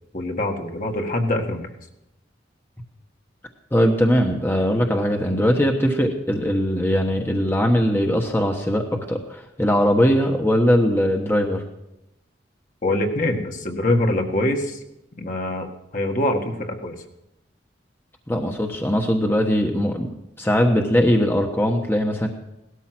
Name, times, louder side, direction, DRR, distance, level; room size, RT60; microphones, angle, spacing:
voice 1, 0.1-1.7 12.8-14.8 15.2-15.7 15.9-17.0, left 1 dB, 45° left, 3 dB, 1.7 m, -24 dB
voice 2, 3.7-11.6 18.3-20.1 20.4-22.3, equal, 10° left, 2 dB, 1.2 m, -20 dB
18.0 x 13.0 x 6.1 m, 0.88 s
head